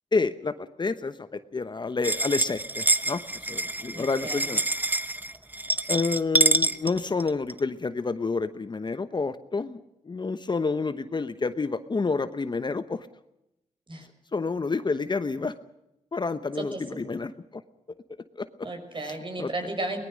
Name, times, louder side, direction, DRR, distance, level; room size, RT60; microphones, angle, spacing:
voice 1, 0.1-3.2 3.5-4.6 5.9-9.8 10.0-13.1 14.3-15.5 16.1-17.6 18.4-18.5 19.1-19.5, left 4 dB, 35° left, 12 dB, 1.0 m, -29 dB
sound 1, 2.0-7.6, right 2 dB, 15° right, 0.9 m, -26 dB
voice 2, 3.9-4.5 13.9-14.1 16.5-16.8 18.6-20.0, right 2 dB, 40° right, 4 dB, 6.0 m, -34 dB
22.5 x 19.5 x 6.4 m, 0.87 s
cardioid pair, 70°, 13 cm